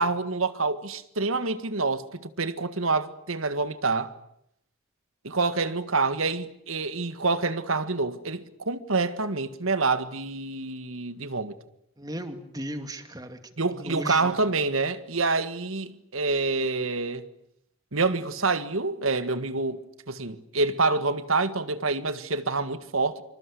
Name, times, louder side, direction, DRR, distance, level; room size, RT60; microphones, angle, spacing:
voice 1, 0.0-2.0 2.4-4.1 5.2-11.5 13.6-17.3 17.9-23.2, right 3 dB, 80° right, 1.7 m, -27 dB
voice 2, 12.0-14.3, right 1 dB, 20° right, 2.3 m, -36 dB
27.0 x 24.5 x 8.5 m
head